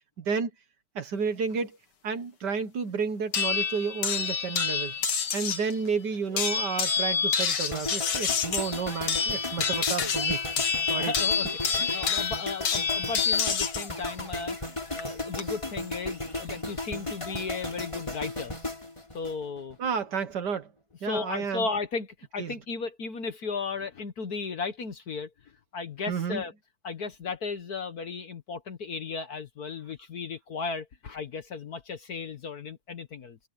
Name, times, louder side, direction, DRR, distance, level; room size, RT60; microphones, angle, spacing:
voice 1, 0.2-0.5 0.9-1.8 2.0-4.9 5.3-10.4 10.9-11.1 11.8-12.1 19.8-20.7 21.0-21.7 22.4-22.5 26.1-26.4, right 5 dB, 55° right, 1.6 m, -31 dB
sound 1, 3.3-5.7 6.4-13.9 15.0-15.4, left 6 dB, 80° left, 2.9 m, -28 dB
voice 2, 6.3-6.6 10.9-18.5 19.1-19.8 21.0-22.1 22.3-25.3 25.7-26.5 26.8-33.4, left 4 dB, 50° left, 1.5 m, -35 dB
sound 2, 7.7-19.9 20.2-20.5, left 2 dB, 15° left, 3.6 m, -35 dB
omnidirectional pair, 2.4 m